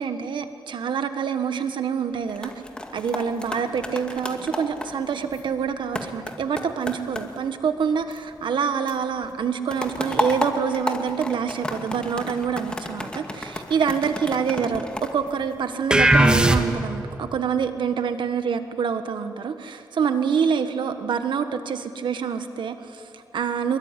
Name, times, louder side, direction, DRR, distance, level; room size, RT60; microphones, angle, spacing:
voice 1, 0.0-2.5 2.9-23.8, right 6 dB, 85° right, 8 dB, 1.5 m, -26 dB
sound 1, 2.1-8.6 8.9-16.1 16.6-16.9, left 1 dB, 10° left, 2.2 m, -33 dB
sound 2, 15.9-17.1, right 1 dB, 10° right, 1.6 m, -17 dB
27.0 x 22.0 x 9.9 m, 2.5 s
wide cardioid pair, 125°, 8 cm